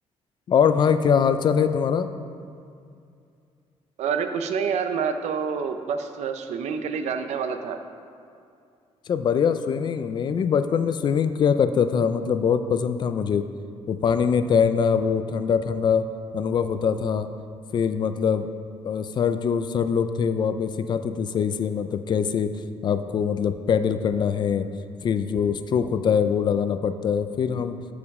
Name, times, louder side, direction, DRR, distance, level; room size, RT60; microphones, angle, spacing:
voice 1, 0.5-2.1 9.1-13.5 13.9-16.1 16.3-17.3 17.7-18.5 18.8-22.6 22.8-24.7 25.0-27.8, left 7 dB, 40° left, 10 dB, 0.4 m, -23 dB
voice 2, 4.0-7.8, right 6 dB, 75° right, 7 dB, 0.6 m, -27 dB
12.5 x 5.1 x 4.8 m, 2.4 s
cardioid pair, 175°, 12 cm